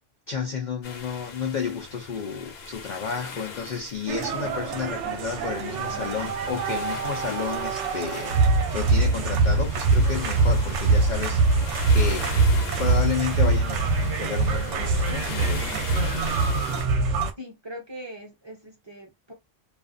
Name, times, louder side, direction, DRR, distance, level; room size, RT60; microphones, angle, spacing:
voice 1, 0.3-8.4 8.7-12.3 12.8-15.7, left 6 dB, 75° left, 0.4 m, -31 dB
sound 1, 0.8-16.8, left 4 dB, 60° left, 0.8 m, -39 dB
sound 2, 4.1-17.3, right 3 dB, 70° right, 0.9 m, -23 dB
voice 2, 17.4-19.3, equal, 25° right, 0.6 m, -41 dB
2.4 x 2.3 x 2.5 m
omnidirectional pair, 1.3 m